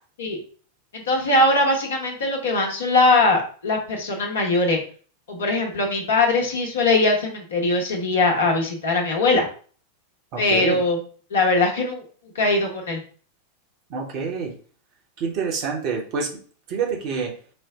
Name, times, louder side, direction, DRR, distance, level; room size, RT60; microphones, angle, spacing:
voice 1, 0.9-4.8 5.3-9.5 10.4-11.0 11.3-12.0 12.3-13.0, left 2 dB, 65° left, 1 dB, 1.0 m, -21 dB
voice 2, 10.3-10.8 13.9-14.5 15.2-16.3 16.7-17.3, right 5 dB, 40° right, 0 dB, 1.0 m, -27 dB
4.3 x 2.1 x 3.6 m, 0.43 s
figure-of-eight pair, 90°, 0 cm